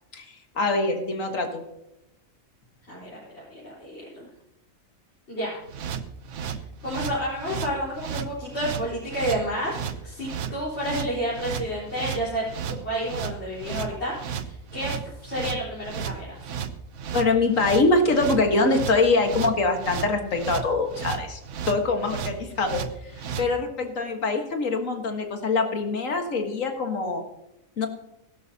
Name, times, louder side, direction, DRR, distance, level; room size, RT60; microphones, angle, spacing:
voice 1, 0.1-1.6 17.1-21.4 21.7-23.1 23.4-27.2 27.8-27.9, left 3 dB, 70° left, 4 dB, 2.1 m, -24 dB
voice 2, 2.9-4.3 5.3-5.6 6.8-14.1 14.5-16.4, equal, 50° left, -8 dB, 4.9 m, -30 dB
sound 1, 5.7-23.5, right 7 dB, 65° right, 1.1 m, -33 dB
16.5 x 12.5 x 2.9 m, 0.89 s
omnidirectional pair, 1.4 m